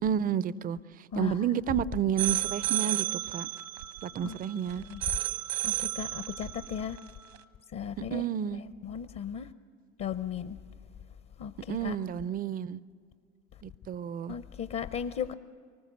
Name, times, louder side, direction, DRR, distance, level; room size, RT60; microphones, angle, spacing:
voice 1, 0.0-3.5 4.0-4.8 8.0-8.6 11.7-12.8 13.6-14.3, right 9 dB, 20° right, 19 dB, 0.5 m, -31 dB
sound 1, 2.2-7.4, right 14 dB, 80° right, 1.3 m, -33 dB
voice 2, 5.6-7.0 7.7-8.2 8.8-9.5 10.0-10.6 11.4-11.9 14.3-15.3, left 8 dB, 35° left, 12 dB, 0.8 m, -36 dB
24.0 x 20.0 x 7.8 m, 2.2 s
hypercardioid pair, 90°, 40 cm